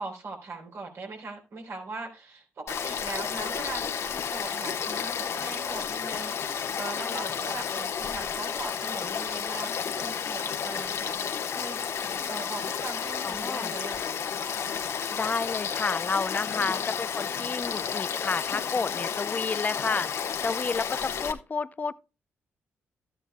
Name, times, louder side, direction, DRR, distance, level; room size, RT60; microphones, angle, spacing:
voice 1, 0.0-11.2 11.5-14.2 16.5-16.8, right 3 dB, 65° right, 3.8 m, -40 dB
Frog / Stream, 2.7-21.3, left 7 dB, 70° left, 1.2 m, -32 dB
voice 2, 7.0-7.3 13.2-13.7 15.1-21.9, left 4 dB, 35° left, 0.5 m, -31 dB
12.5 x 9.9 x 2.3 m
cardioid pair, 70°, 5 cm